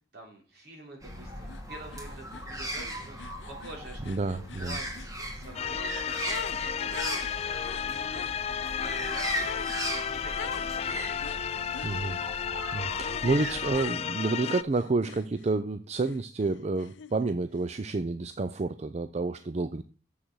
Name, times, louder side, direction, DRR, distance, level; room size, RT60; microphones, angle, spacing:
voice 1, 0.1-11.5, right 2 dB, 60° right, 0 dB, 3.7 m, -47 dB
sound 1, 1.0-13.9, equal, 20° right, 2.4 m, -38 dB
sound 2, 1.5-1.6 1.9-6.6 6.9-8.4 9.4-9.8 10.3-10.7 11.2-11.9 13.0-13.3 13.7-15.6 16.0-17.4, left 6 dB, 90° left, 0.5 m, -44 dB
voice 2, 4.1-4.8 11.8-12.2 12.7-19.8, right 3 dB, 40° right, 11 dB, 0.5 m, -29 dB
sound 3, 5.5-14.6, left 7 dB, 35° left, 0.3 m, -33 dB
7.4 x 6.5 x 6.2 m, 0.37 s
head